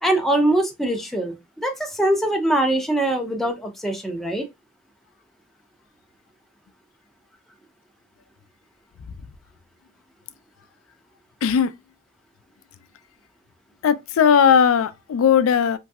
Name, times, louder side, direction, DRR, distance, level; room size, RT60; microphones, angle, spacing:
voice 1, 0.0-4.5, right 1 dB, ahead, 0.5 m, -22 dB
voice 2, 11.4-11.7 13.8-15.8, left 7 dB, 75° left, 0.3 m, -17 dB
3.0 x 2.6 x 2.3 m
head